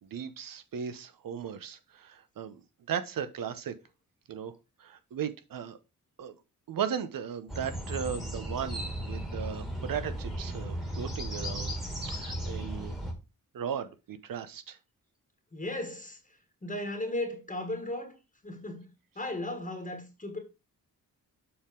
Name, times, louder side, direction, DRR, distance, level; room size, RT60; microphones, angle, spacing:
voice 1, 0.0-2.6 2.9-3.7 4.3-4.5 4.8-5.8 6.2-6.3 6.7-11.7 12.1-12.9 13.5-14.8, right 8 dB, 75° right, 0.9 m, -36 dB
sound 1, 7.5-13.1, right 1 dB, ahead, 1.5 m, -36 dB
voice 2, 15.5-16.2 16.6-18.2 18.4-18.9 19.1-20.4, left 1 dB, 20° left, 1.4 m, -35 dB
7.0 x 3.8 x 5.1 m
wide cardioid pair, 130°, 35 cm